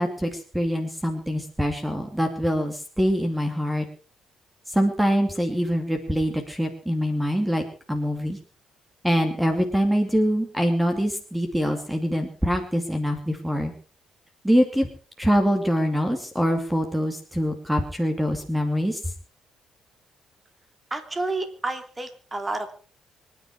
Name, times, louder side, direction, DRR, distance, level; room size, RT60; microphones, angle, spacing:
voice 1, 0.0-3.8 4.7-7.6 7.9-8.4 9.0-13.7 14.4-14.9 15.2-19.0, equal, 5° right, 5 dB, 2.6 m, -24 dB
voice 2, 20.9-22.7, right 2 dB, 20° right, 8 dB, 3.0 m, -30 dB
25.0 x 10.0 x 4.8 m, 0.39 s
cardioid pair, 90°, 0 cm